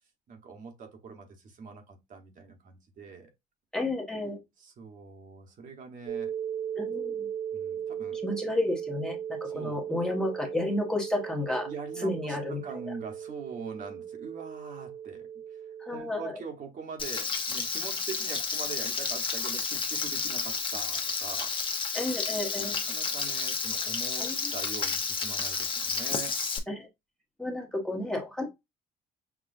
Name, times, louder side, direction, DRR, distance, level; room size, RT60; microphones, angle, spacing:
voice 1, 0.3-3.3 4.6-6.3 7.5-8.2 9.4-9.8 11.7-15.3 15.9-21.5 22.6-26.4, right 5 dB, 50° right, 1.2 m, -43 dB
voice 2, 3.7-4.4 6.8-7.3 8.2-11.7 12.0-12.6 15.8-16.3 21.9-22.8 24.2-24.5 26.7-26.9 27.4-28.5, left 2 dB, 5° left, 1.0 m, -31 dB
sound 1, 6.1-16.0, right 9 dB, 70° right, 0.9 m, -37 dB
Frying (food), 17.0-26.6, left 5 dB, 30° left, 0.9 m, -31 dB
6.0 x 2.3 x 2.6 m
cardioid pair, 110°, 17 cm